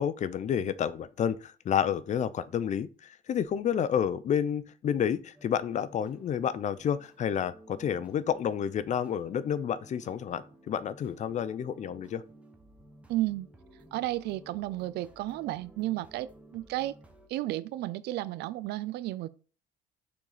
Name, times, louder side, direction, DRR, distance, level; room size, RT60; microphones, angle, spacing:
voice 1, 0.0-12.2, left 8 dB, 45° left, 0.6 m, -30 dB
sound 1, 5.3-17.3, right 1 dB, 5° right, 1.2 m, -55 dB
voice 2, 13.1-13.5 13.9-17.0 17.3-19.3, right 16 dB, 80° right, 0.5 m, -33 dB
6.8 x 3.9 x 4.9 m
cardioid pair, 110°, 17 cm